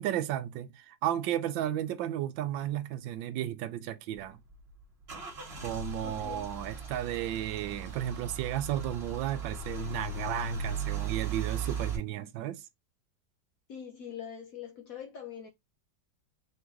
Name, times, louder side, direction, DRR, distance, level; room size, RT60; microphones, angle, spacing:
voice 1, 0.0-4.4 5.6-12.6, right 12 dB, 85° right, 1.3 m, -33 dB
Car / Engine starting / Idling, 4.1-12.0, right 4 dB, 35° right, 1.4 m, -37 dB
voice 2, 6.0-6.5 13.7-15.5, left 8 dB, 65° left, 0.9 m, -43 dB
3.9 x 3.1 x 3.4 m
omnidirectional pair, 2.0 m